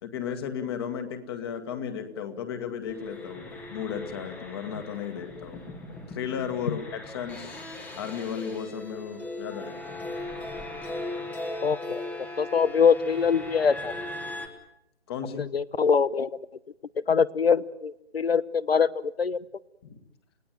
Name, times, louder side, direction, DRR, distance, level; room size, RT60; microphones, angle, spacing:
voice 1, 0.0-5.6 6.1-7.6 7.9-10.1 15.1-15.4 19.8-20.0, left 7 dB, 20° left, 7 dB, 1.9 m, -34 dB
sound 1, 2.9-14.5, left 2 dB, 5° left, 1.3 m, -38 dB
voice 2, 11.6-12.0 12.4-13.9 15.4-16.3 17.1-19.4, left 6 dB, 60° left, 20 dB, 1.0 m, -23 dB
30.0 x 17.0 x 9.2 m, 0.80 s
figure-of-eight pair, 150°, 34 cm